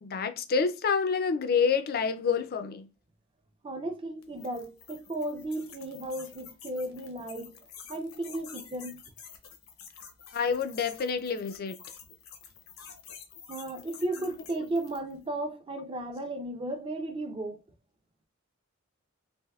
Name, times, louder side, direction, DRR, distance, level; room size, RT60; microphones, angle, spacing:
voice 1, 0.0-2.9 10.3-11.8 14.2-14.3, left 5 dB, 45° left, 0.4 m, -28 dB
voice 2, 3.6-7.6 7.9-9.0 13.5-17.6, right 1 dB, 25° right, 0.4 m, -35 dB
sound 1, 4.2-15.2, left 7 dB, 80° left, 0.7 m, -49 dB
3.4 x 2.6 x 2.3 m
head